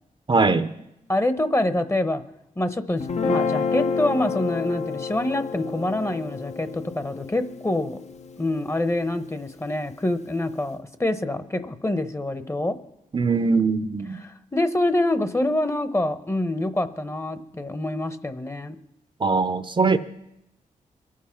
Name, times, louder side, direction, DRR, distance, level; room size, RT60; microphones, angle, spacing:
voice 1, 0.3-0.7 13.1-14.2 19.2-20.0, right 4 dB, 35° right, 11 dB, 0.7 m, -21 dB
voice 2, 1.1-2.2 2.6-8.0 8.4-12.8 14.2-18.8, left 1 dB, 20° left, 11 dB, 0.9 m, -26 dB
Guitar, 3.0-9.3, left 5 dB, 50° left, 0.8 m, -30 dB
22.5 x 7.5 x 5.8 m, 0.85 s
cardioid pair, 70°, 14 cm